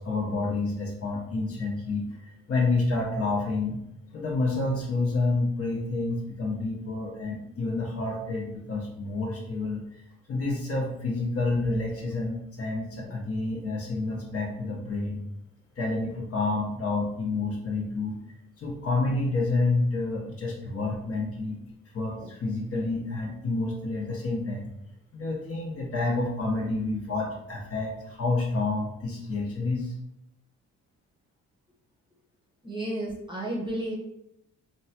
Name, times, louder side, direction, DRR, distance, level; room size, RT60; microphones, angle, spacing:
voice 1, 0.0-3.8 4.1-10.0 10.3-15.2 15.8-18.2 18.6-21.6 21.9-24.7 25.1-29.9, left 3 dB, 50° left, -2 dB, 0.9 m, -29 dB
voice 2, 32.6-34.0, right 1 dB, 15° right, -3 dB, 0.8 m, -32 dB
3.1 x 2.2 x 2.8 m, 0.82 s
cardioid pair, 90°, 30 cm